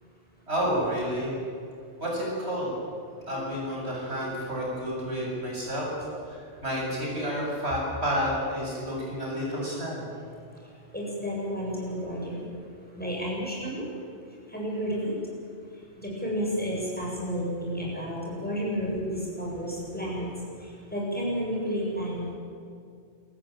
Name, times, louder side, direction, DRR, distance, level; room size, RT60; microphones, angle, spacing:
voice 1, 0.5-1.3 2.0-2.7 3.2-5.9 6.3-10.0, equal, 65° right, -3 dB, 8.0 m, -30 dB
voice 2, 10.9-12.4 13.0-13.8 14.5-15.1 16.0-19.1 19.4-20.3 20.9-22.3, equal, 10° left, -5 dB, 7.8 m, -31 dB
27.5 x 14.5 x 9.2 m, 2.4 s
omnidirectional pair, 1.2 m